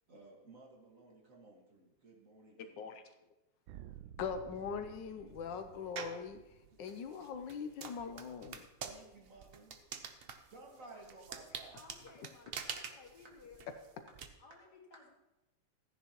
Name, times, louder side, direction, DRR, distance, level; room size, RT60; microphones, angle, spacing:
voice 1, 0.1-3.0 8.8-9.8 10.4-11.8, right 3 dB, 45° right, -1 dB, 2.1 m, -56 dB
sound 1, 3.7-7.7, right 11 dB, 90° right, 1.3 m, -54 dB
voice 2, 4.2-6.4 6.8-8.6, left 6 dB, 75° left, 8 dB, 1.4 m, -41 dB
sound 2, 6.0-6.3 6.8-14.3, right 6 dB, 70° right, 0.5 m, -46 dB
voice 3, 11.7-13.7 14.4-15.1, left 4 dB, 60° left, 0 dB, 2.4 m, -57 dB
14.5 x 10.0 x 3.0 m, 0.97 s
omnidirectional pair, 2.0 m